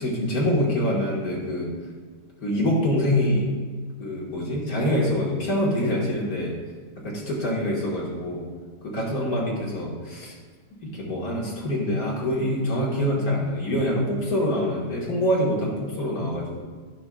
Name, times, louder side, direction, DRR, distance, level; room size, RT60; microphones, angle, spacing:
voice 1, 0.0-1.7 2.4-3.5 4.0-6.5 7.0-8.5 8.8-10.3 10.8-16.6, left 1 dB, 60° left, -4 dB, 1.9 m, -25 dB
11.5 x 6.1 x 2.3 m, 1.5 s
omnidirectional pair, 1.8 m